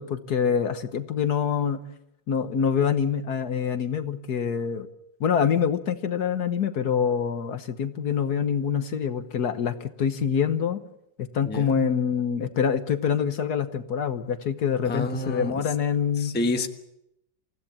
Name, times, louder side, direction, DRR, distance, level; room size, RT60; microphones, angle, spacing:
voice 1, 0.0-1.8 2.3-4.9 5.2-10.8 11.2-16.4, left 7 dB, 60° left, 9 dB, 1.6 m, -25 dB
voice 2, 14.9-15.6 16.2-16.7, left 2 dB, 5° left, 5 dB, 1.0 m, -28 dB
28.5 x 16.0 x 7.3 m, 0.81 s
omnidirectional pair, 2.0 m